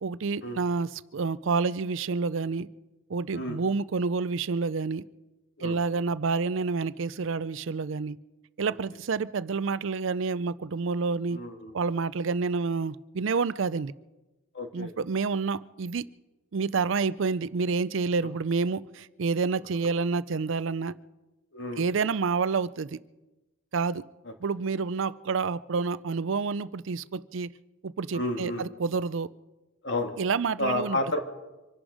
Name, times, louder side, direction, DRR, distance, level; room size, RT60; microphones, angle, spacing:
voice 1, 0.0-2.7 3.1-5.0 5.6-8.2 8.6-11.4 11.7-13.9 14.7-16.0 16.5-21.0 21.8-23.0 23.7-24.0 24.4-27.5 27.8-29.3 30.2-31.0, right 4 dB, 60° right, 17 dB, 0.5 m, -28 dB
voice 2, 11.3-11.8 14.5-14.9 21.5-21.8 24.3-24.4 28.1-28.6 29.8-30.1 30.6-31.2, left 1 dB, 55° left, 4 dB, 2.0 m, -31 dB
25.5 x 11.5 x 5.0 m, 1.1 s
head